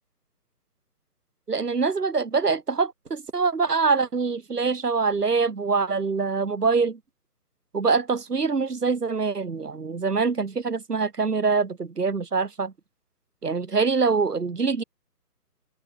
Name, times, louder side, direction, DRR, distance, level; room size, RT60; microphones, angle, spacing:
voice 1, 1.5-7.0 7.7-12.7 13.4-14.8, right 4 dB, 75° right, 5.8 m, -24 dB
hypercardioid pair, 170°, 47 cm